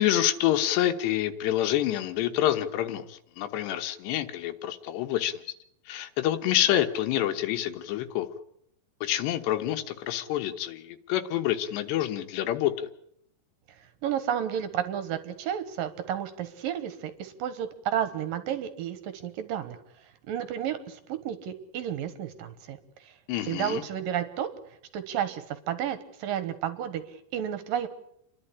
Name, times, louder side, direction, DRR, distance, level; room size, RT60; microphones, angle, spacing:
voice 1, 0.0-5.3 5.9-8.3 9.0-12.9 23.3-23.8, left 12 dB, 80° left, 9 dB, 3.2 m, -27 dB
voice 2, 14.0-19.8 20.3-23.1 23.4-24.5 24.9-27.9, right 9 dB, 65° right, 11 dB, 2.6 m, -32 dB
29.5 x 11.5 x 9.9 m, 0.74 s
omnidirectional pair, 5.0 m